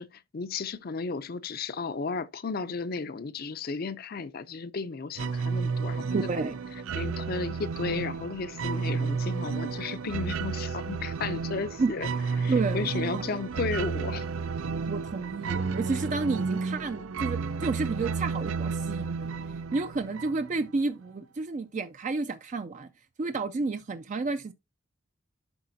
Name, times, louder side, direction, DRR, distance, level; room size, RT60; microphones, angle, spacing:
voice 1, 0.0-6.2 6.9-12.1 12.4-14.2, left 4 dB, 45° left, 0.5 m, -34 dB
sound 1, 5.2-20.7, right 5 dB, 85° right, 0.5 m, -32 dB
voice 2, 6.1-6.5 11.8-11.9 12.5-12.9 13.1-13.2 14.9-19.3 19.7-22.9 23.2-24.5, right 3 dB, 35° right, 0.4 m, -30 dB
11.5 x 4.8 x 2.7 m
head